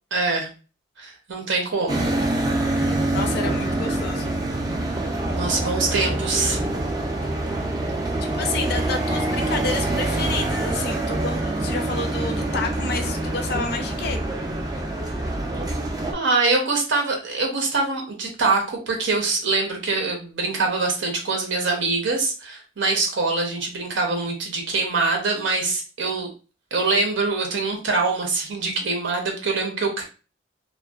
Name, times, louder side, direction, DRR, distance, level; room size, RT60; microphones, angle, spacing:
voice 1, 0.1-0.5 1.0-2.0 5.3-6.6 16.1-26.3 26.7-30.0, right 3 dB, 70° right, 1 dB, 0.6 m, -24 dB
sound 1, 1.9-16.1, right 1 dB, 20° right, 0.3 m, -25 dB
voice 2, 3.1-4.3 8.2-14.2, left 3 dB, 55° left, 5 dB, 0.4 m, -29 dB
2.5 x 2.2 x 2.2 m, 0.35 s
head